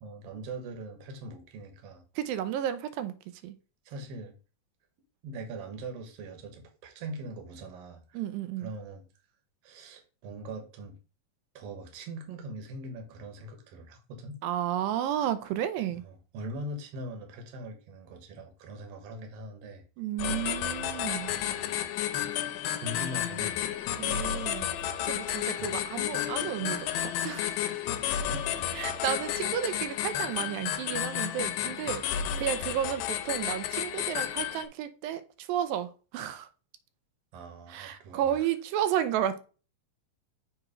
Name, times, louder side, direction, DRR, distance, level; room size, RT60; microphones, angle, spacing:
voice 1, 0.0-2.0 3.9-4.3 5.2-8.2 8.6-9.0 9.6-11.0 11.5-14.4 15.9-19.8 21.3-22.0 22.8-23.7 25.6-25.8 28.3-28.5 32.2-32.3 37.3-38.5, right 1 dB, 60° right, 1.8 m, -42 dB
voice 2, 2.2-3.1 3.4-3.6 8.2-8.7 14.4-16.0 20.0-21.3 24.0-24.7 25.1-27.6 28.7-32.0 32.4-36.5 37.7-39.4, right 10 dB, 90° right, 2.4 m, -32 dB
sound 1, 20.2-34.7, left 10 dB, 85° left, 2.3 m, -32 dB
7.2 x 3.0 x 4.9 m
omnidirectional pair, 3.9 m